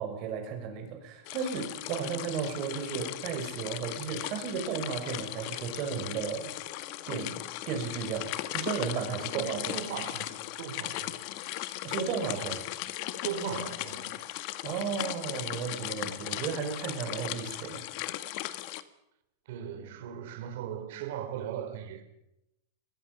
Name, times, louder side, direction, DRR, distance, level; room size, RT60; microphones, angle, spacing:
voice 1, 0.0-6.5 7.1-7.4 7.7-9.8 11.8-12.6 14.6-17.8, right 6 dB, 35° right, 6.1 m, -34 dB
sound 1, 1.2-18.8, left 15 dB, 40° left, 1.4 m, -37 dB
voice 2, 9.1-11.2 13.2-14.2 19.5-22.0, right 8 dB, 60° right, 4.4 m, -38 dB
24.0 x 20.5 x 7.1 m
supercardioid pair, 170°, 0 cm